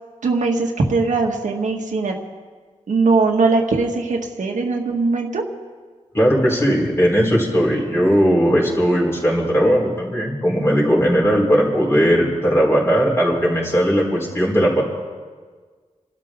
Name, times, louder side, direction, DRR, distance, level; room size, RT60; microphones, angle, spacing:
voice 1, 0.2-2.2 2.9-5.4, right 3 dB, 90° right, 1 dB, 1.8 m, -20 dB
voice 2, 6.1-14.8, equal, 20° left, -3 dB, 4.0 m, -18 dB
29.0 x 12.5 x 3.8 m, 1.5 s
wide cardioid pair, 165°, 13 cm